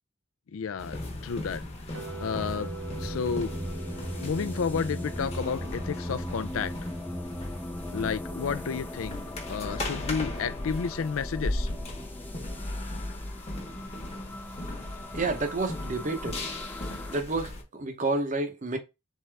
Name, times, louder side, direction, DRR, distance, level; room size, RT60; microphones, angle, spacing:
voice 1, 0.5-1.0 1.2-1.6 2.2-3.5 4.2-6.7 7.9-9.2 9.5-11.7, left 6 dB, 80° left, 0.4 m, -31 dB
sound 1, 0.8-17.6, left 1 dB, 30° left, 1.0 m, -37 dB
sound 2, 1.9-8.0, right 5 dB, 80° right, 0.9 m, -46 dB
sound 3, 2.0-17.2, left 1 dB, 10° left, 0.4 m, -39 dB
voice 2, 15.1-16.4 17.1-18.8, right 3 dB, 40° right, 0.7 m, -29 dB
4.1 x 3.6 x 3.4 m
head